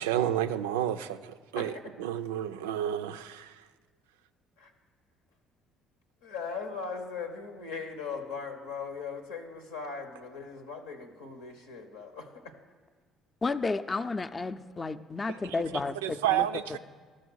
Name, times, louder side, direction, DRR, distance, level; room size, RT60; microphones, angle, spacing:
voice 1, 0.0-1.7 2.0-3.5 16.0-16.8, right 11 dB, 90° right, 10 dB, 0.3 m, -30 dB
voice 2, 6.2-12.5, left 5 dB, 90° left, 4 dB, 0.9 m, -39 dB
voice 3, 13.4-16.8, left 3 dB, 30° left, 12 dB, 0.4 m, -32 dB
13.0 x 6.4 x 6.2 m, 1.5 s
hypercardioid pair, 60°, 0 cm